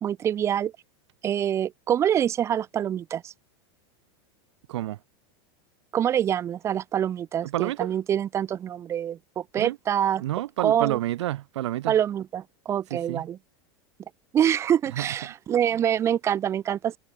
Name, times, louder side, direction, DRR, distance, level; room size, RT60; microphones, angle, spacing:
voice 1, 0.0-0.7 1.2-3.3 5.9-10.2 10.6-11.0 11.9-13.4 14.3-17.0, right 10 dB, 20° right, 0.8 m, -25 dB
voice 2, 7.4-7.9 9.6-9.8 10.2-11.9 12.9-13.3 14.9-15.1, right 14 dB, 85° right, 1.1 m, -29 dB
supercardioid pair, 165°, 14 cm